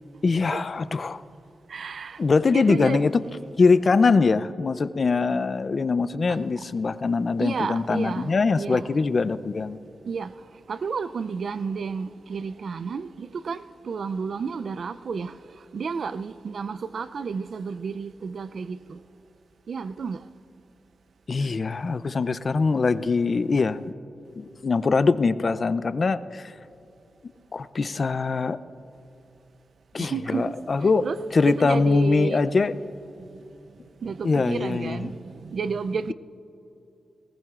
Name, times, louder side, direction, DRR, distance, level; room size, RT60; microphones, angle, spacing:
voice 1, 0.2-1.2 2.2-3.1 3.6-9.8 21.3-23.8 24.3-26.5 27.5-28.6 29.9-31.1 31.3-32.7 34.2-35.1, left 4 dB, 50° left, 0.4 m, -22 dB
voice 2, 1.7-2.2 2.5-3.0 6.3-6.4 7.4-8.9 10.0-10.3 10.7-15.4 15.7-19.0 19.7-20.2 30.0-32.4 33.2-33.4 34.0-36.1, right 5 dB, 65° right, 0.4 m, -31 dB
19.5 x 19.5 x 2.4 m
cardioid pair, 90°, 0 cm